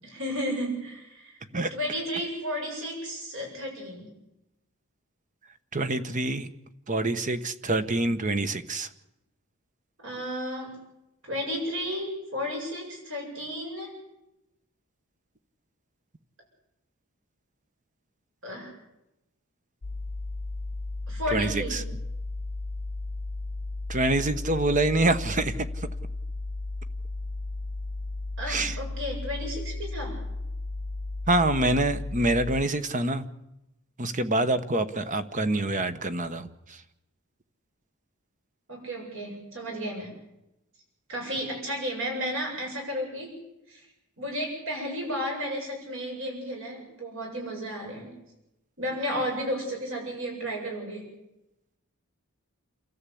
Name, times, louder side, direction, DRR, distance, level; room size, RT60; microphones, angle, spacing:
voice 1, 0.0-1.3 1.7-4.2 10.0-10.7 11.2-13.9 18.4-18.7 21.1-21.8 28.4-30.2 38.7-40.2 41.1-43.3 43.7-43.8 44.2-48.1 48.8-51.1, equal, 60° right, 0 dB, 7.8 m, -33 dB
voice 2, 5.7-6.5 6.9-8.9 21.3-21.8 23.9-25.9 28.5-28.8 31.3-33.3 34.0-36.8, right 2 dB, 35° right, 11 dB, 1.1 m, -26 dB
sound 1, 19.8-32.7, left 2 dB, 85° left, 0.9 m, -34 dB
28.5 x 13.5 x 8.5 m, 0.90 s
head